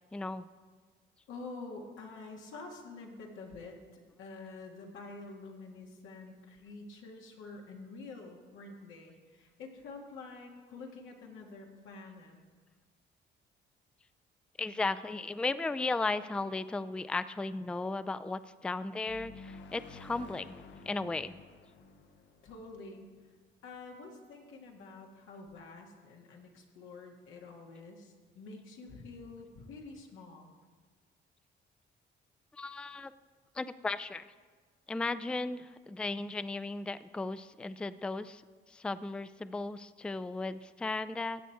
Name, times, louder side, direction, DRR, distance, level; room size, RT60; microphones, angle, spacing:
voice 1, 0.1-0.5 14.6-20.6 20.9-21.4 32.5-33.1 33.5-34.3 34.9-38.4 38.7-41.4, left 3 dB, 5° left, 14 dB, 0.3 m, -35 dB
voice 2, 1.3-12.4 22.4-23.1 23.6-30.5, left 3 dB, 85° left, 0 dB, 1.8 m, -48 dB
sound 1, 19.0-23.7, left 4 dB, 70° left, 1.0 m, -52 dB
14.5 x 8.1 x 4.5 m, 1.5 s
cardioid pair, 90°, 20 cm